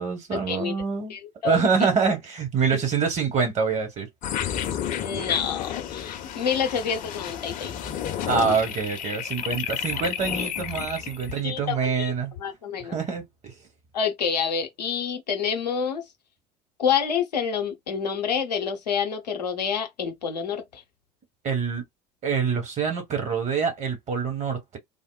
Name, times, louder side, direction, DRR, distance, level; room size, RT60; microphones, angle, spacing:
voice 1, 0.0-1.1 1.4-4.1 8.2-12.3 12.9-13.6 21.4-21.9 22.2-24.8, right 5 dB, 35° right, 1.2 m, -25 dB
voice 2, 1.1-1.6 2.7-2.8 5.0-7.7 11.4-12.1 12.4-13.0 13.9-16.1 16.8-20.8, left 7 dB, 75° left, 0.7 m, -28 dB
sound 1, 4.2-11.4, left 9 dB, 40° left, 0.6 m, -31 dB
3.5 x 2.1 x 2.3 m
figure-of-eight pair, 65°, 21 cm